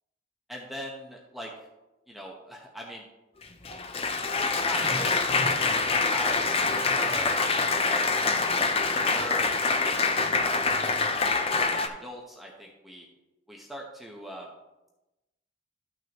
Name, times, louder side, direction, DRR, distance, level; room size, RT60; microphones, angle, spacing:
voice 1, 0.5-1.5 2.1-3.1 4.4-5.1 5.4-8.8 9.0-10.0 10.3-10.7 11.1-13.1 13.5-14.5, equal, ahead, -2 dB, 1.0 m, -41 dB
Applause, 3.4-11.9, left 4 dB, 30° left, 0.7 m, -25 dB
13.0 x 6.2 x 3.0 m, 1.0 s
head